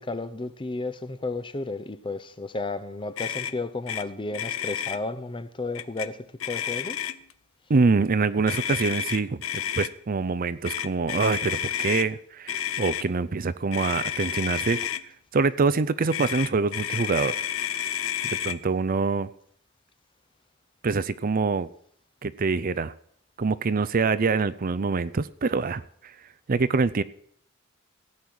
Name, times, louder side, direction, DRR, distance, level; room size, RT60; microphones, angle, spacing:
voice 1, 0.0-7.1, left 2 dB, 25° left, 0.7 m, -33 dB
Motor vehicle (road), 3.2-3.5 3.9-4.0 4.3-5.0 5.7-6.1 6.4-7.3 8.5-9.9 10.6-12.1 12.5-13.0 13.7-15.0 16.1-18.6, left 9 dB, 70° left, 0.6 m, -30 dB
voice 2, 7.7-14.8 15.3-17.3 17.8-18.0 18.2-19.3 20.8-21.7 22.2-22.9 23.4-26.1 26.5-27.0, right 4 dB, 45° right, 0.5 m, -25 dB
15.5 x 8.7 x 6.4 m
head